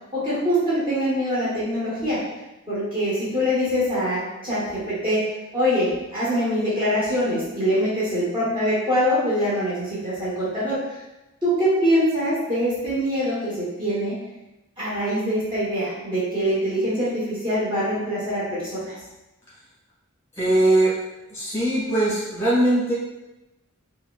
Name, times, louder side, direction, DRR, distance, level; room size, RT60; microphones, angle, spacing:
voice 1, 0.1-2.2 2.7-5.2 5.5-10.8 11.4-14.2 14.8-19.0, equal, 25° right, -10 dB, 1.0 m, -24 dB
voice 2, 20.4-21.0 21.3-22.9, right 1 dB, 15° left, -9 dB, 1.4 m, -20 dB
4.6 x 2.1 x 2.3 m, 0.96 s
head